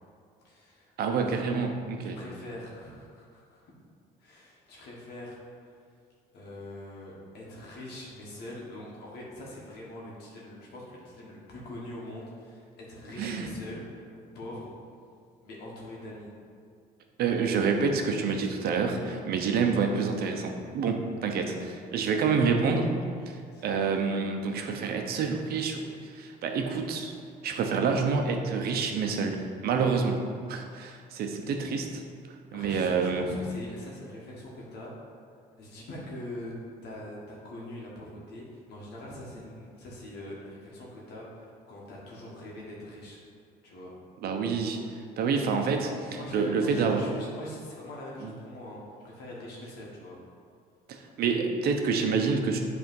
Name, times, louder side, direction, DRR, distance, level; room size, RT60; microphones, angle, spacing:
voice 1, 0.4-1.4 2.0-3.7 4.2-5.7 6.3-14.7 15.4-16.3 23.5-23.9 32.5-34.9 35.6-36.5 36.8-43.2 43.6-43.9 46.1-50.2, left 1 dB, 75° left, -4 dB, 1.6 m, -43 dB
voice 2, 1.0-2.2 13.2-13.5 17.2-22.9 23.3-27.1 27.4-30.2 30.5-32.0 32.5-33.4 44.2-44.8 45.2-47.0 48.2-48.3 50.9-52.6, right 5 dB, 65° right, 4 dB, 0.8 m, -28 dB
7.9 x 3.5 x 5.4 m, 2.2 s
cardioid pair, 110°, 17 cm